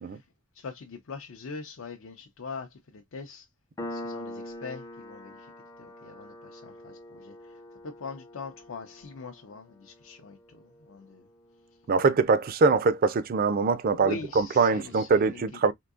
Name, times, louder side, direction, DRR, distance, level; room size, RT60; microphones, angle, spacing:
voice 1, 0.5-3.5 3.9-5.5 5.8-7.5 7.8-11.2 13.9-15.4, left 4 dB, 75° left, 0.5 m, -42 dB
Piano, 3.8-10.9, left 1 dB, 15° left, 0.4 m, -43 dB
voice 2, 11.9-15.7, right 4 dB, 45° right, 0.4 m, -23 dB
3.7 x 2.7 x 2.4 m
head